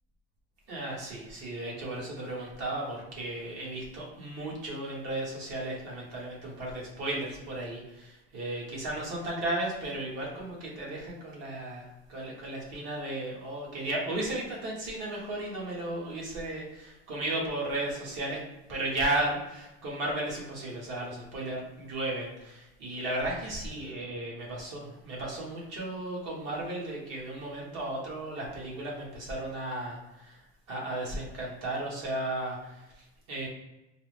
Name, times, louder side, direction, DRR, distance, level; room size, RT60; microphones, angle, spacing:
voice 1, 0.7-18.4 18.7-30.4 30.7-33.5, right 1 dB, 55° right, -3 dB, 1.4 m, -35 dB
4.5 x 2.1 x 3.2 m, 0.98 s
cardioid pair, 160°, 30 cm